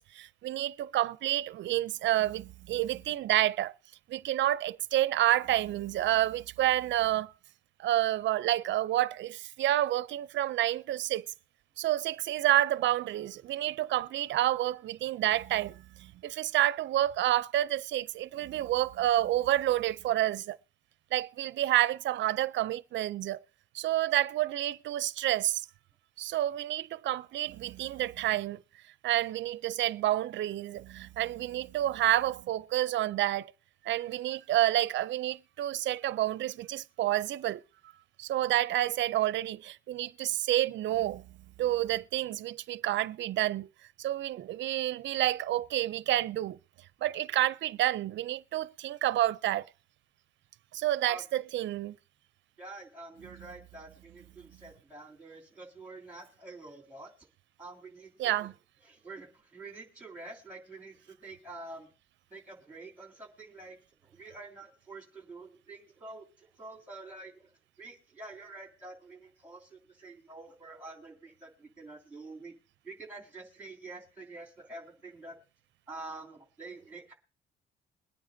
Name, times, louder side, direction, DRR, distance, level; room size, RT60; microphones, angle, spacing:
voice 1, 0.0-3.7 4.1-7.3 7.8-11.3 11.8-20.6 21.1-23.4 23.7-25.7 26.2-28.6 29.0-33.5 33.8-37.6 38.2-41.3 41.6-43.7 44.0-46.6 47.0-49.7 50.7-52.0 53.4-53.5 58.2-58.5, right 14 dB, 65° right, 0.5 m, -29 dB
voice 2, 52.6-57.1 57.6-58.5 58.9-61.9 62.3-67.5 67.8-72.5 72.8-75.4 75.9-77.1, right 2 dB, 5° right, 2.9 m, -47 dB
22.0 x 9.3 x 2.7 m
cardioid pair, 90°, 20 cm